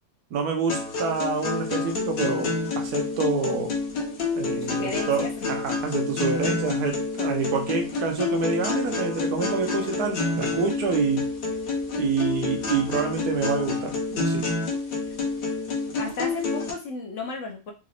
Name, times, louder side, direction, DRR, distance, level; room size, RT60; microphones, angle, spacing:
voice 1, 0.3-3.7 4.4-11.3 12.0-14.5, right 5 dB, 70° right, 4 dB, 1.2 m, -27 dB
sound 1, 0.7-16.7, left 3 dB, 85° left, 1.5 m, -28 dB
voice 2, 4.7-5.5 15.1-15.2 16.0-17.7, left 3 dB, 55° left, 3 dB, 1.0 m, -34 dB
4.0 x 3.0 x 2.4 m, 0.30 s
omnidirectional pair, 1.8 m